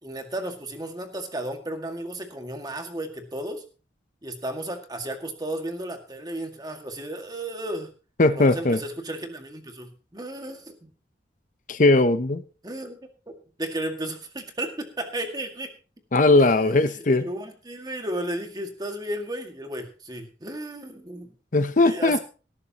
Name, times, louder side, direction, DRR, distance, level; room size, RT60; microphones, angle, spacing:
voice 1, 0.0-3.6 4.2-7.9 8.3-10.9 12.6-13.0 13.3-15.7 16.4-21.3 21.8-22.2, right 1 dB, 20° right, 5 dB, 2.0 m, -34 dB
voice 2, 8.2-8.8 11.7-12.4 16.1-17.3 21.5-22.2, left 2 dB, 45° left, 11 dB, 0.7 m, -19 dB
17.5 x 13.5 x 2.9 m, 0.36 s
head